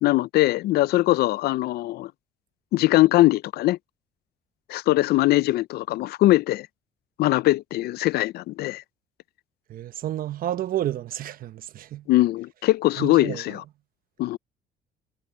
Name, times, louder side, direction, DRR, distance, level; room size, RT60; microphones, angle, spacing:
voice 1, 0.0-2.1 2.7-3.8 4.7-6.7 7.2-8.8 12.1-13.6 14.2-14.4, left 17 dB, 70° left, 0.4 m, -21 dB
voice 2, 9.7-12.1 13.0-13.6, right 12 dB, 60° right, 1.0 m, -31 dB
cardioid pair, 110°, 17 cm